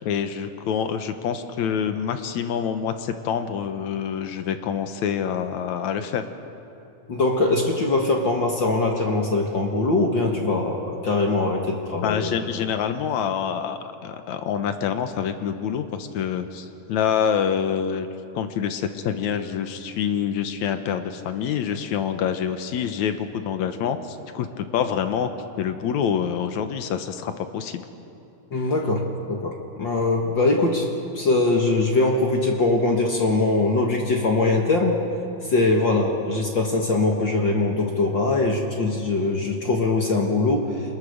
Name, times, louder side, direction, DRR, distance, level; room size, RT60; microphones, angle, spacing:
voice 1, 0.0-6.2 12.0-18.1 18.3-25.3 25.6-27.8 28.5-28.6, left 8 dB, 65° left, 8 dB, 2.1 m, -26 dB
voice 2, 7.1-12.4 28.5-29.5 29.8-30.9 31.1-35.0 35.4-40.7, left 2 dB, 45° left, 1 dB, 1.6 m, -22 dB
26.5 x 21.0 x 6.6 m, 2.7 s
omnidirectional pair, 3.9 m